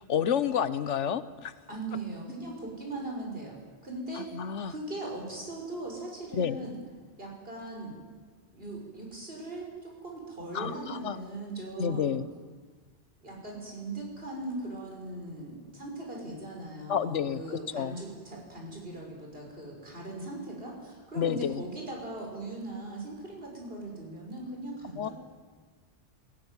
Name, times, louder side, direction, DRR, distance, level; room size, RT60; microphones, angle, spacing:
voice 1, 0.0-1.5 4.1-4.7 6.3-6.6 10.5-11.2 11.8-12.3 16.9-18.0 21.1-21.6 25.0-25.1, left 8 dB, 85° left, 14 dB, 1.2 m, -30 dB
voice 2, 1.7-3.5 3.8-4.3 4.7-6.8 7.2-8.0 8.5-12.2 13.2-25.1, right 2 dB, 55° right, -1 dB, 5.8 m, -39 dB
19.5 x 17.5 x 9.8 m, 1.5 s
omnidirectional pair, 1.2 m